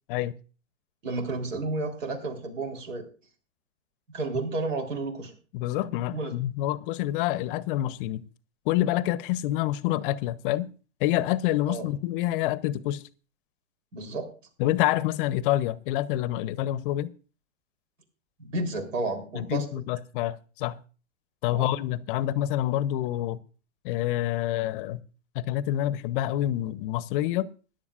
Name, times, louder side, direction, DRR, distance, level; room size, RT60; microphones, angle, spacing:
voice 1, 1.0-3.0 4.1-5.3 6.1-6.3 11.7-11.9 13.9-14.3 18.4-19.7 21.5-21.7, right 3 dB, 70° right, 3.6 m, -31 dB
voice 2, 5.5-8.2 8.7-10.7 11.0-13.0 14.6-17.1 19.4-20.8 21.4-23.4 23.8-25.0 25.3-27.5, left 14 dB, 45° left, 0.7 m, -27 dB
21.0 x 10.5 x 2.4 m
hypercardioid pair, 115°, 39 cm